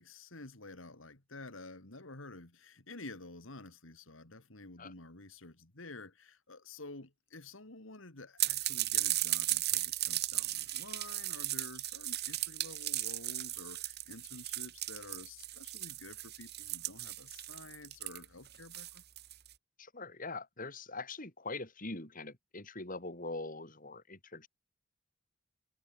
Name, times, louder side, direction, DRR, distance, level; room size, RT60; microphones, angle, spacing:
voice 1, 0.0-19.0, left 2 dB, 75° left, 2.8 m, -50 dB
sound 1, 8.4-19.5, right 15 dB, 55° right, 2.2 m, -36 dB
voice 2, 19.8-24.5, left 3 dB, 40° left, 5.7 m, -43 dB
head